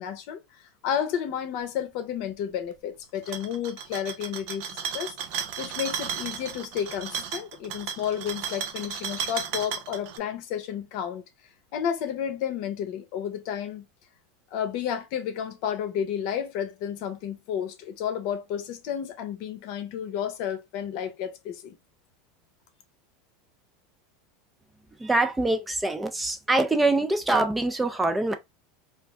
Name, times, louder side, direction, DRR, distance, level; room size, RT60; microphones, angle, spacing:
voice 1, 0.0-5.2 5.6-11.2 11.7-13.9 14.5-21.8, left 9 dB, 60° left, 0.7 m, -31 dB
sound 1, 3.2-10.2, right 8 dB, 60° right, 0.5 m, -34 dB
voice 2, 25.0-28.3, right 2 dB, 10° right, 0.4 m, -24 dB
2.5 x 2.1 x 3.4 m
hypercardioid pair, 95°, 0 cm